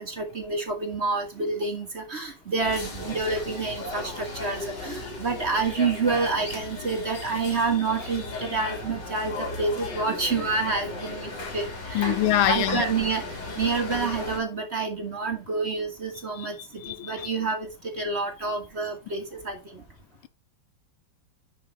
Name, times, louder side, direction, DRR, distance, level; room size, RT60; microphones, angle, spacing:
voice 1, 0.0-12.2 12.5-19.8, right 4 dB, 35° right, 1.5 m, -28 dB
sound 1, 2.6-14.4, left 2 dB, 55° left, 3.1 m, -36 dB
voice 2, 11.9-12.9 16.4-16.5 16.8-17.3, left 12 dB, 80° left, 1.4 m, -24 dB
10.5 x 5.1 x 3.5 m
omnidirectional pair, 2.4 m